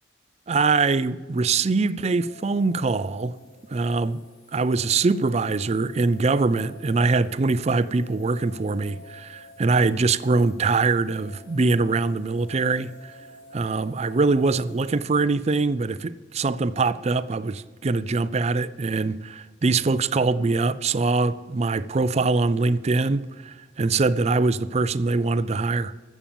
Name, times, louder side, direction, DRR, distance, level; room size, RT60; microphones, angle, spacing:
voice 1, 0.5-3.3 3.7-4.2 4.5-13.1 13.5-25.9, right 3 dB, 35° right, 0.4 m, -23 dB
sound 1, 2.1-15.0, left 1 dB, 55° left, 3.9 m, -50 dB
14.0 x 7.4 x 6.9 m
head